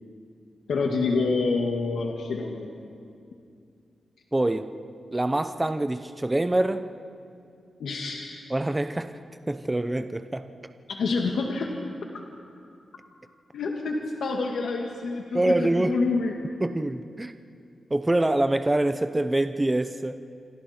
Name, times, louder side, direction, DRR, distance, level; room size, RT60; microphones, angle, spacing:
voice 1, 0.7-2.7 7.8-8.5 10.9-11.7 13.5-16.3, left 3 dB, 90° left, 1 dB, 1.8 m, -27 dB
voice 2, 4.3-4.7 5.1-6.9 8.5-9.1 9.5-10.5 15.3-16.0 16.6-17.3 17.9-20.2, right 1 dB, 15° right, 10 dB, 0.7 m, -25 dB
27.5 x 26.0 x 4.4 m, 2.4 s
wide cardioid pair, 125°, 0 cm